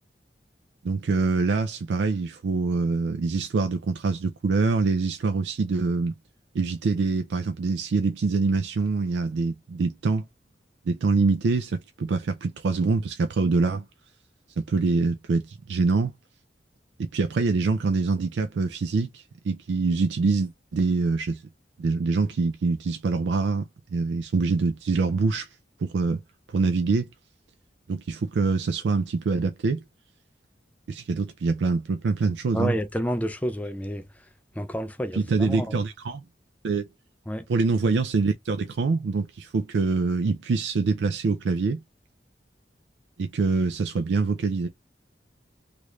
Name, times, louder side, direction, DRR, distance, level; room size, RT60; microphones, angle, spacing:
voice 1, 0.8-6.1 6.5-10.3 10.9-13.8 14.6-16.1 17.1-21.4 21.8-25.5 25.8-26.2 26.5-27.1 27.9-29.8 30.9-32.7 35.1-36.2 36.6-36.9 37.5-41.8 43.2-44.7, right 4 dB, 80° right, 0.4 m, -25 dB
voice 2, 32.5-34.1 34.6-35.7 37.3-37.4, equal, 10° left, 0.4 m, -29 dB
3.1 x 2.5 x 3.0 m
head